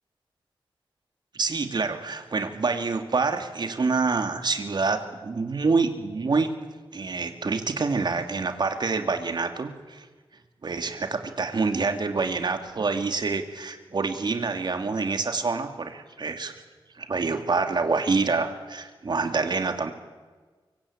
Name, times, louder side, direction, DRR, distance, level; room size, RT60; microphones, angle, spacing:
voice 1, 1.3-6.5 6.9-10.1 10.6-16.5 17.0-19.9, right 4 dB, 55° right, 6 dB, 2.6 m, -26 dB
24.5 x 24.0 x 8.7 m, 1.4 s
wide cardioid pair, 100°, 9 cm